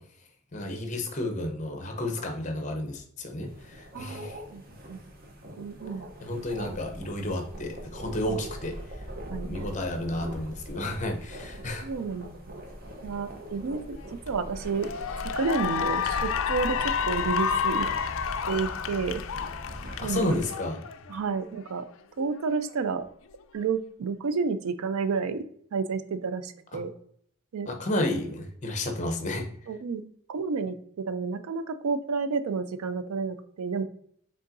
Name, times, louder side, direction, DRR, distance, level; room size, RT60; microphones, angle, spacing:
voice 1, 0.5-4.4 6.2-9.1 9.4-11.9 20.0-20.8 26.7-26.8 27.7-29.5, left 1 dB, 35° left, 4 dB, 0.7 m, -31 dB
sound 1, 3.4-20.5, equal, 40° right, 0.8 m, -41 dB
voice 2, 3.9-4.6 4.9-5.0 5.6-6.1 8.3-8.4 9.3-9.7 11.8-12.6 13.0-14.9 15.2-17.9 18.5-19.2 20.0-20.3 21.1-21.9 22.2-23.1 23.5-25.4 25.7-26.9 27.5-27.7 29.7-30.0 30.3-33.8, right 4 dB, 80° right, 12 dB, 0.4 m, -30 dB
Cheering / Applause, 14.0-14.3 14.7-21.3, left 7 dB, 65° left, 0.3 m, -30 dB
5.3 x 3.6 x 2.6 m, 0.64 s
head